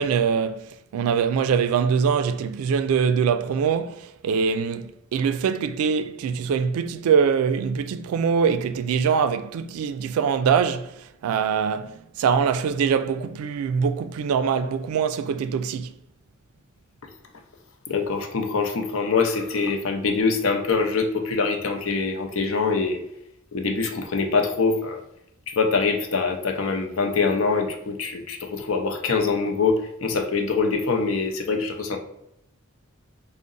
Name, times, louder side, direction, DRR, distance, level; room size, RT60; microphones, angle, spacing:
voice 1, 0.0-15.9, right 6 dB, 90° right, 0.3 m, -23 dB
voice 2, 17.9-23.0 23.5-25.0 25.6-32.0, left 4 dB, 65° left, 0.5 m, -24 dB
3.7 x 2.1 x 3.7 m
head